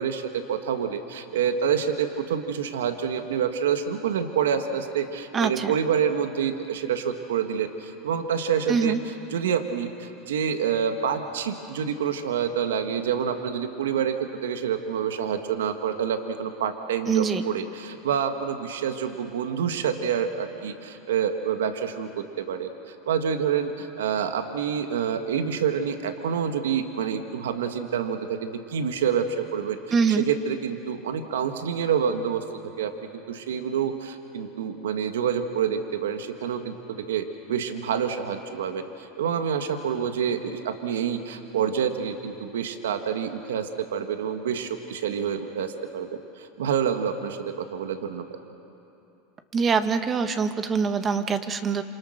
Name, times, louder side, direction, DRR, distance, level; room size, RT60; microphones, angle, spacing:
voice 1, 0.0-32.4 32.8-46.1 46.4-48.2, right 7 dB, 85° right, 7 dB, 1.5 m, -27 dB
voice 2, 5.3-5.7 8.7-9.0 17.1-17.4 29.9-30.2 49.5-51.8, right 5 dB, 30° right, 8 dB, 1.6 m, -24 dB
28.0 x 27.0 x 6.5 m, 2.8 s
hypercardioid pair, 100°, 0 cm